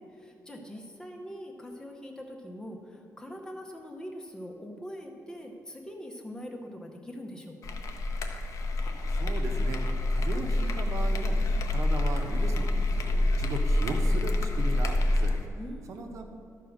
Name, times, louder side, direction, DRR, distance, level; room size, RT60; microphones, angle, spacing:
voice 1, 0.0-7.7 15.6-16.1, equal, 10° left, 1 dB, 0.8 m, -42 dB
sound 1, 7.6-15.5, left 1 dB, 65° left, 0.8 m, -27 dB
voice 2, 8.9-9.8 10.1-11.4 11.7-12.7 13.0-15.3 15.9-16.2, right 3 dB, 65° right, 3 dB, 1.0 m, -37 dB
12.5 x 4.6 x 6.4 m, 2.2 s
wide cardioid pair, 175°, 6 cm